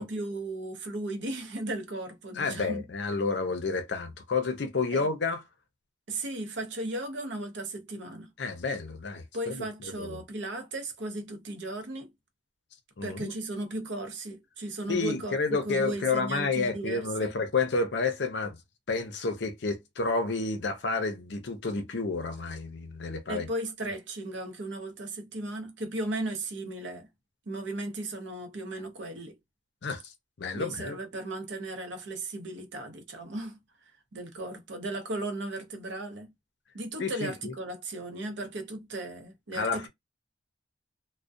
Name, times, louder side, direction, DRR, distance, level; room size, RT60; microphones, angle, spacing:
voice 1, 0.0-2.8 4.9-5.0 6.1-8.3 9.3-12.1 13.0-15.4 15.6-17.3 23.3-27.1 27.5-29.4 30.5-33.6 34.1-36.3 36.7-39.9, right 2 dB, 70° right, 0.7 m, -36 dB
voice 2, 2.3-5.4 8.4-10.2 13.0-13.3 14.9-18.6 18.9-23.5 29.8-30.1 30.4-31.0 37.0-37.5 39.5-39.9, left 4 dB, 65° left, 0.6 m, -30 dB
2.3 x 2.1 x 2.5 m
head